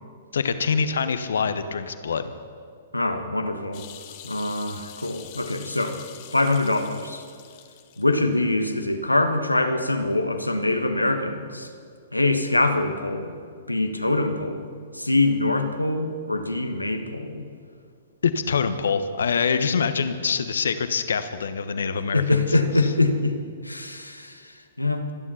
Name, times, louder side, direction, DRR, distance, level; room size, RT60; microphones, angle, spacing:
voice 1, 0.3-2.3 18.2-22.5, left 5 dB, 65° left, 11 dB, 1.1 m, -25 dB
voice 2, 2.9-3.9 4.2-6.0 6.3-7.2 8.0-11.7 12.1-13.3 13.7-14.7 14.9-17.5 22.1-23.3 23.6-25.1, left 2 dB, 85° left, 6 dB, 1.4 m, -24 dB
sound 1, 3.7-8.3 8.6-8.7, left 11 dB, 40° left, 1.3 m, -45 dB
25.0 x 9.9 x 5.7 m, 2.2 s
figure-of-eight pair, 115°, 0 cm